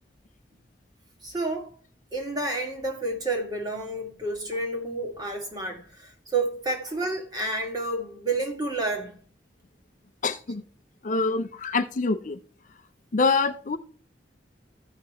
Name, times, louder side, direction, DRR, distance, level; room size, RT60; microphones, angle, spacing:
voice 1, 1.2-1.7 2.1-9.2, right 2 dB, 20° right, 1.8 m, -30 dB
voice 2, 10.2-10.6 11.0-12.4 13.1-13.8, left 3 dB, 40° left, 0.5 m, -25 dB
14.5 x 5.8 x 3.0 m
head